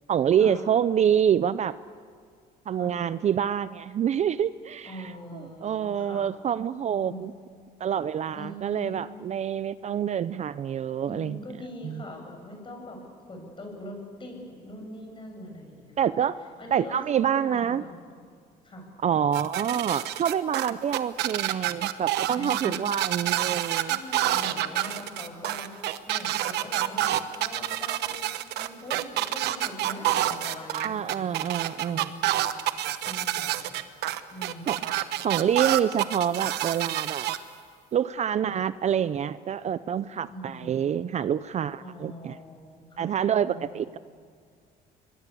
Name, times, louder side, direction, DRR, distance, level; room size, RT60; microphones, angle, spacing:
voice 1, 0.1-1.7 2.7-4.9 5.3-7.3 7.8-11.4 11.8-12.0 16.0-16.4 16.7-17.8 19.0-24.0 30.7-32.1 34.7-34.8 35.2-37.3 37.9-42.3 43.0-44.0, right 9 dB, 40° right, 15 dB, 0.5 m, -27 dB
voice 2, 4.8-6.3 7.0-7.2 8.3-9.2 11.0-13.0 13.3-16.2 16.6-18.1 18.6-18.9 22.3-22.8 23.9-31.5 31.9-32.5 33.1-33.7 34.3-34.9 38.4-38.6 40.3-41.0 41.8-43.1 43.4-43.8, left 1 dB, 30° left, 3 dB, 7.5 m, -42 dB
sound 1, 19.3-37.4, right 14 dB, 85° right, 1.1 m, -28 dB
25.5 x 21.5 x 8.5 m, 2.1 s
cardioid pair, 110°, 17 cm